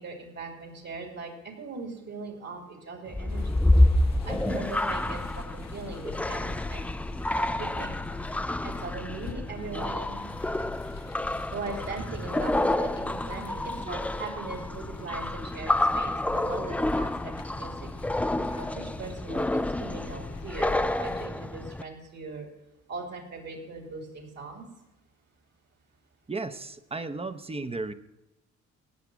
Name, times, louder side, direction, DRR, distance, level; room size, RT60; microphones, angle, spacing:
voice 1, 0.0-3.6 4.2-6.9 7.3-7.9 8.6-10.2 11.5-17.9 18.4-22.5 22.9-24.6, right 4 dB, 60° right, 2 dB, 2.7 m, -40 dB
sound 1, 3.1-21.8, left 1 dB, 5° left, 0.3 m, -28 dB
sound 2, 3.3-21.3, left 7 dB, 60° left, 0.9 m, -45 dB
voice 2, 26.3-27.9, right 3 dB, 20° right, 11 dB, 0.7 m, -34 dB
16.5 x 5.9 x 6.1 m, 0.96 s
cardioid pair, 90°, 30 cm